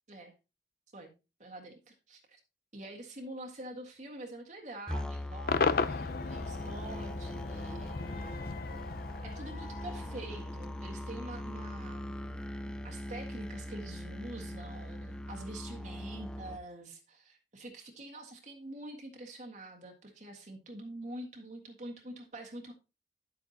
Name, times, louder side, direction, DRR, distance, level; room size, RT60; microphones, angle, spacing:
voice 1, 1.4-2.4 2.7-8.9 9.2-12.1 12.8-22.7, right 1 dB, 40° right, 1 dB, 1.7 m, -46 dB
sound 1, 4.9-16.6, left 1 dB, 5° left, 0.5 m, -41 dB
Cheering / Crowd / Fireworks, 5.5-10.8, left 4 dB, 55° left, 0.6 m, -35 dB
10.5 x 8.0 x 2.9 m, 0.28 s
head